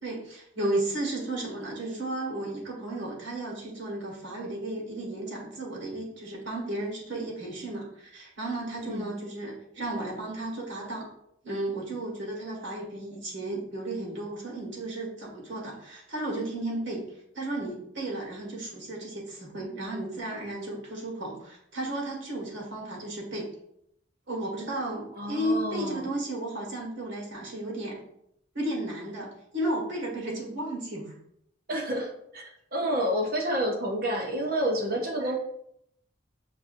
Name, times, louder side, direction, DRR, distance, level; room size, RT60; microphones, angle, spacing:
voice 1, 0.0-11.1 11.4-17.1 17.3-23.5 24.3-28.0 28.5-31.1 35.2-35.3, right 1 dB, 70° right, -3 dB, 1.5 m, -34 dB
voice 2, 25.1-26.1 31.7-35.4, equal, 50° right, 0 dB, 0.8 m, -29 dB
5.9 x 2.5 x 2.6 m, 0.73 s
head